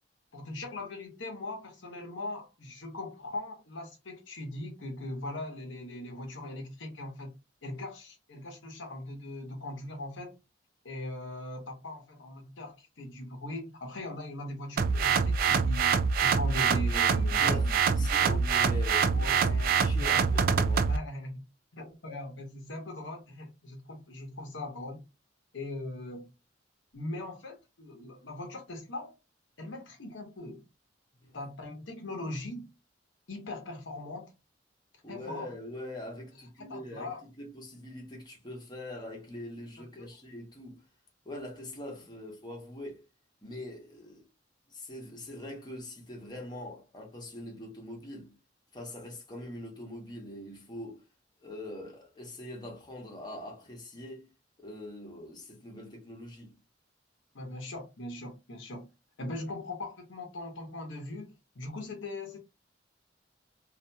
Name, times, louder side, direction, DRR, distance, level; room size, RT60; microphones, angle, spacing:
voice 1, 0.3-7.3 7.6-10.3 10.8-18.5 19.1-20.4 20.8-21.4 21.7-25.0 25.5-26.3 26.9-29.1 29.6-30.7 31.3-32.7 33.3-34.3 35.1-35.6 36.6-37.2 40.0-40.1 57.3-58.9 59.2-62.4, left 1 dB, 85° left, 0.9 m, -40 dB
sound 1, 14.8-21.0, right 5 dB, 50° right, 0.3 m, -25 dB
voice 2, 17.3-19.4 19.7-20.9 31.1-31.5 35.0-40.9 41.2-43.0 43.4-44.3 44.7-48.4 48.7-51.0 51.4-54.3 54.6-56.6, left 1 dB, 25° left, 0.9 m, -43 dB
2.7 x 2.4 x 2.2 m
head